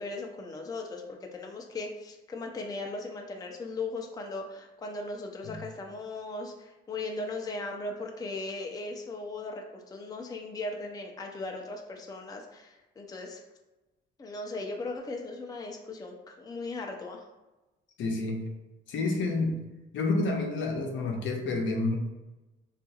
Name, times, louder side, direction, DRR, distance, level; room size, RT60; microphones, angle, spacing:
voice 1, 0.0-13.4 14.2-17.3, left 2 dB, 20° left, 2 dB, 0.4 m, -38 dB
voice 2, 18.0-18.5 18.9-19.6 19.9-22.0, left 3 dB, 70° left, 2 dB, 0.6 m, -29 dB
3.5 x 2.4 x 2.7 m, 1.1 s
cardioid pair, 90°, 20 cm